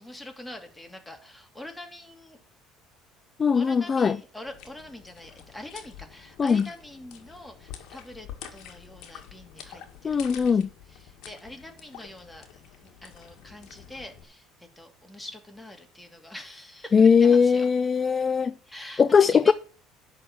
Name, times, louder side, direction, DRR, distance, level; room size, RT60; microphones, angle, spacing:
voice 1, 0.0-2.4 3.5-10.6 10.9-17.7 18.7-19.5, left 1 dB, 10° left, 2.6 m, -44 dB
voice 2, 3.4-4.2 6.4-6.7 10.0-10.7 16.9-18.5 19.0-19.5, left 6 dB, 35° left, 0.4 m, -20 dB
sound 1, 4.4-14.2, left 9 dB, 65° left, 1.7 m, -47 dB
11.0 x 4.1 x 7.7 m
hypercardioid pair, 65°, 0 cm